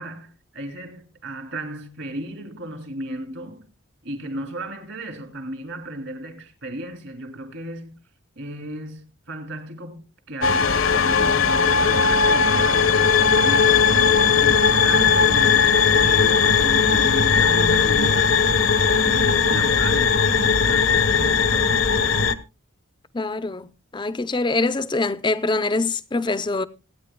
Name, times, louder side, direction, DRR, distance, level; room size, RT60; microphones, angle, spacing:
voice 1, 0.0-3.7 4.0-7.9 8.4-13.1 13.4-18.5 19.0-22.2, right 1 dB, 65° right, 2.6 m, -35 dB
sound 1, 10.4-22.4, left 6 dB, 65° left, 0.9 m, -18 dB
voice 2, 23.1-23.7 23.9-26.7, left 3 dB, 20° left, 0.5 m, -24 dB
26.0 x 9.4 x 2.2 m
head